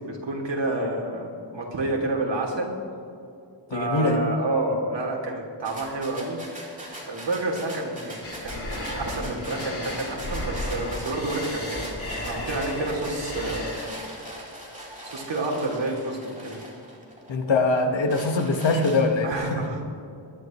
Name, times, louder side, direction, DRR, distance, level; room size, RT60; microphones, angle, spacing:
voice 1, 0.0-2.7 3.7-6.4 7.1-11.8 12.2-13.7 15.0-16.6 19.2-19.9, right 2 dB, 70° right, -1 dB, 3.1 m, -29 dB
voice 2, 3.7-4.2 17.3-19.6, left 3 dB, 80° left, 4 dB, 1.7 m, -23 dB
sound 1, 5.7-17.3 17.8-19.3, right 1 dB, 15° right, 3.8 m, -41 dB
sound 2, 8.2-13.9, left 1 dB, 30° left, 3.3 m, -34 dB
22.0 x 11.5 x 3.2 m, 2.6 s
wide cardioid pair, 80°, 45 cm